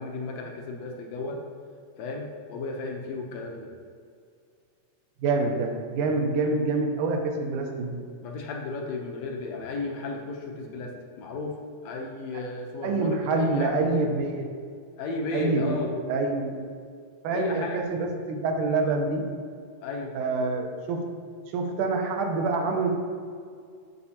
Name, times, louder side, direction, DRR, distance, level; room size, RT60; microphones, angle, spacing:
voice 1, 0.0-1.4 2.0-3.7 8.2-13.8 15.0-16.0 17.3-17.8 19.8-20.1, left 3 dB, 70° left, 1 dB, 1.8 m, -34 dB
voice 2, 5.2-8.0 12.8-14.5 15.3-16.7 17.2-19.3 20.1-21.1 21.5-22.9, right 3 dB, 80° right, 3 dB, 2.4 m, -26 dB
15.0 x 5.3 x 2.9 m, 2.2 s
omnidirectional pair, 3.6 m